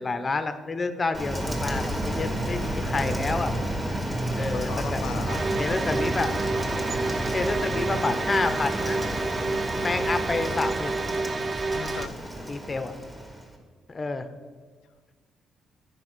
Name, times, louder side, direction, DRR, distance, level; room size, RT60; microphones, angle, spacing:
voice 1, 0.0-3.6 4.3-5.0 5.5-6.3 7.3-9.0 9.8-10.9 12.5-12.9 13.9-14.3, left 3 dB, 30° left, 10 dB, 0.7 m, -29 dB
Rain, 1.1-13.6, right 1 dB, 15° right, 2.0 m, -30 dB
voice 2, 4.3-5.7 11.7-12.9, left 10 dB, 80° left, 13 dB, 0.3 m, -40 dB
sound 1, 5.3-12.1, right 3 dB, 35° right, 0.3 m, -29 dB
9.6 x 5.3 x 6.1 m, 1.5 s
cardioid pair, 90°, 0 cm